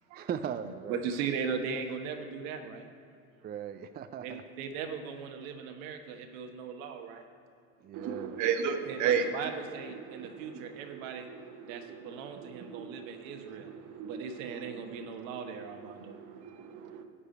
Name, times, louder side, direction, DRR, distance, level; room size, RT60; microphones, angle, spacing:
voice 1, 0.1-1.1 3.4-4.4 7.8-8.4, right 8 dB, 25° right, 9 dB, 0.4 m, -38 dB
voice 2, 0.9-2.9 4.2-7.2 8.9-11.3 11.7-13.7 14.0-16.2, right 6 dB, 75° right, 5 dB, 1.3 m, -38 dB
voice 3, 7.9-9.3 10.1-11.0 11.4-15.3 15.9-17.0, right 7 dB, 45° right, 7 dB, 1.1 m, -35 dB
11.5 x 5.0 x 8.3 m, 2.5 s
supercardioid pair, 100°, 41 cm